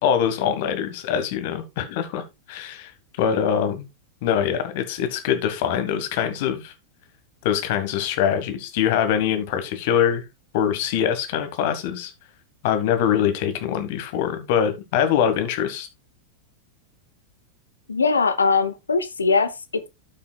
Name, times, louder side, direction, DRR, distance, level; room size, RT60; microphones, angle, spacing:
voice 1, 0.0-2.9 3.2-3.9 4.2-6.7 7.4-10.3 10.5-12.1 12.6-15.9, left 9 dB, 50° left, 1.6 m, -23 dB
voice 2, 17.9-19.9, left 4 dB, 75° left, 0.7 m, -21 dB
13.5 x 5.7 x 2.3 m
figure-of-eight pair, 90°, 0 cm